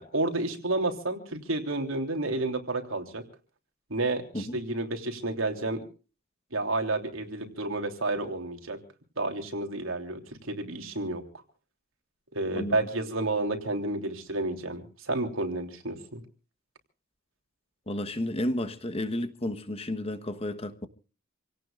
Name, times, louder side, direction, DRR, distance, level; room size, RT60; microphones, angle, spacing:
voice 1, 0.0-3.2 3.9-5.8 6.5-8.8 9.2-11.2 12.3-16.2, right 2 dB, 85° right, 3.2 m, -30 dB
voice 2, 17.9-20.9, left 1 dB, 30° left, 1.2 m, -32 dB
28.0 x 17.5 x 2.5 m
head